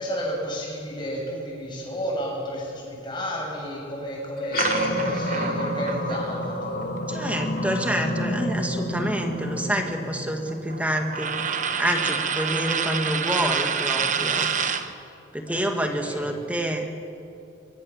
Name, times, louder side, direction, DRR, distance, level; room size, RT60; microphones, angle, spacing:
voice 1, 0.0-6.9 15.5-15.7 16.0-16.2, equal, 25° left, -3 dB, 7.5 m, -31 dB
sound 1, 4.4-11.1, left 1 dB, 50° left, 2.8 m, -29 dB
sound 2, 4.6-8.6 9.0-14.9, right 6 dB, 40° right, 1.0 m, -29 dB
voice 2, 7.1-11.4 11.8-14.5 15.3-16.9, equal, 5° right, 3 dB, 1.9 m, -28 dB
25.0 x 22.0 x 7.4 m, 2.7 s
head